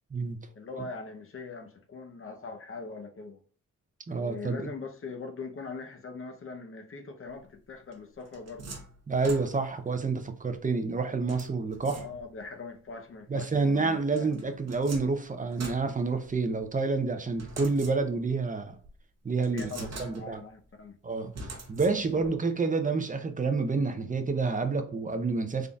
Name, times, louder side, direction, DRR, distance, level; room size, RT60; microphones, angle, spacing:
voice 1, 0.6-3.4 4.1-8.8 11.9-14.5 19.5-21.0 22.0-22.3, left 4 dB, 40° left, 0.7 m, -42 dB
voice 2, 4.1-4.7 9.1-12.1 13.3-18.8 19.2-20.4 21.0-25.7, right 4 dB, 25° right, 0.5 m, -29 dB
sound 1, 7.9-9.9 11.3-12.5 14.1-16.6 17.4-18.4 18.8-18.9 19.4-20.5 21.3-22.4, right 2 dB, 55° right, 0.9 m, -44 dB
3.8 x 3.7 x 2.3 m
wide cardioid pair, 140°, 32 cm